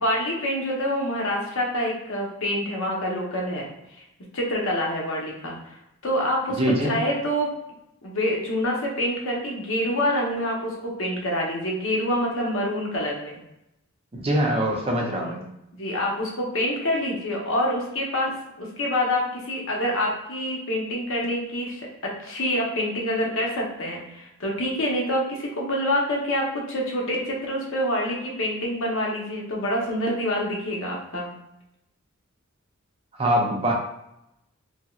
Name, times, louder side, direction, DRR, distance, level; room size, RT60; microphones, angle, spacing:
voice 1, 0.0-3.7 4.3-5.8 6.0-7.5 8.0-13.4 15.2-15.3 15.7-31.3, left 1 dB, 65° left, -2 dB, 1.0 m, -26 dB
voice 2, 6.6-6.9 14.1-15.4 33.2-33.7, right 1 dB, 30° right, -1 dB, 0.6 m, -23 dB
3.4 x 2.9 x 2.4 m, 0.84 s
head